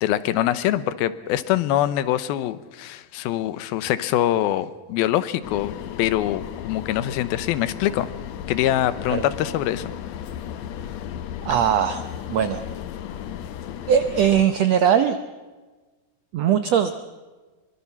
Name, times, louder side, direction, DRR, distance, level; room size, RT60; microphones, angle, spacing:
voice 1, 0.0-8.1 8.5-9.9, left 13 dB, 85° left, 15 dB, 2.7 m, -24 dB
sound 1, 5.4-14.4, left 10 dB, 65° left, 1.7 m, -35 dB
voice 2, 11.4-12.0 12.3-12.6 13.9-15.2 16.3-16.9, right 9 dB, 75° right, 9 dB, 1.5 m, -20 dB
24.0 x 23.5 x 5.9 m, 1.3 s
omnidirectional pair, 4.2 m